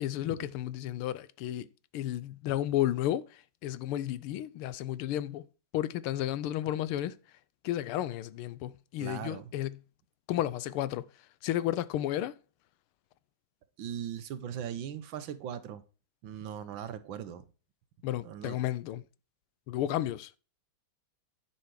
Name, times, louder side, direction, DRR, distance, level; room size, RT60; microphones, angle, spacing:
voice 1, 0.0-1.7 1.9-5.5 5.7-7.2 7.6-9.8 10.3-11.1 11.4-12.4 18.0-19.0 19.7-20.4, left 13 dB, 85° left, 1.5 m, -32 dB
voice 2, 9.0-9.5 13.8-15.8 16.2-17.5 18.2-18.6, right 9 dB, 70° right, 1.5 m, -39 dB
10.0 x 5.9 x 4.7 m
omnidirectional pair, 2.4 m